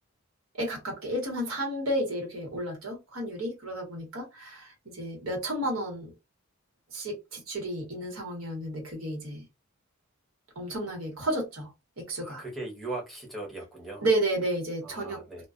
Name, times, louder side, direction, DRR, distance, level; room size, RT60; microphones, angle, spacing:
voice 1, 0.5-6.1 6.9-9.4 10.5-12.4 14.0-15.4, right 1 dB, 75° right, 1.2 m, -32 dB
voice 2, 12.2-14.0 14.8-15.4, right 2 dB, ahead, 0.8 m, -39 dB
2.3 x 2.2 x 2.4 m
head